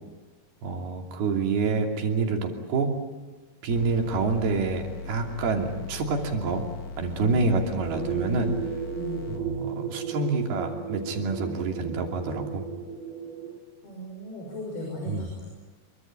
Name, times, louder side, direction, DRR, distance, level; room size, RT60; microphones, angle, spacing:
voice 1, 0.6-3.0 3.6-6.7 7.0-8.5 9.3-12.6 15.1-15.3, right 3 dB, 80° right, 2 dB, 4.8 m, -27 dB
sound 1, 3.7-9.4, left 4 dB, 65° left, 3.4 m, -39 dB
voice 2, 7.1-7.5 8.9-9.2 13.8-15.4, left 1 dB, 85° left, -1 dB, 8.1 m, -37 dB
sound 2, 7.8-13.6, right 8 dB, 50° right, 3.3 m, -35 dB
26.5 x 24.0 x 8.9 m, 1.3 s
omnidirectional pair, 4.4 m